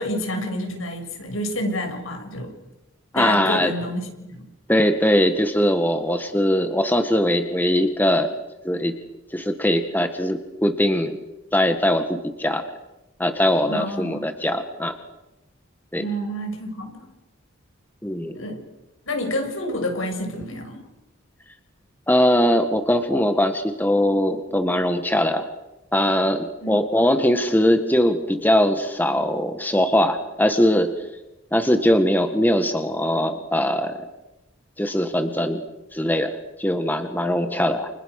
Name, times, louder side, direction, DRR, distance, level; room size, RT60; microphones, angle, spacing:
voice 1, 0.0-2.5 3.1-4.5 13.7-14.3 16.0-16.9 18.3-18.6 19.1-20.9 26.6-26.8, left 1 dB, 80° left, 4 dB, 7.0 m, -28 dB
voice 2, 3.1-3.7 4.7-8.3 8.6-9.0 9.3-11.2 11.5-12.6 13.2-15.0 15.9-16.0 18.0-18.4 22.1-25.4 25.9-30.9 31.5-34.0 34.8-35.6 35.9-37.9, equal, 10° left, 7 dB, 1.8 m, -21 dB
30.0 x 29.5 x 6.7 m, 0.97 s
head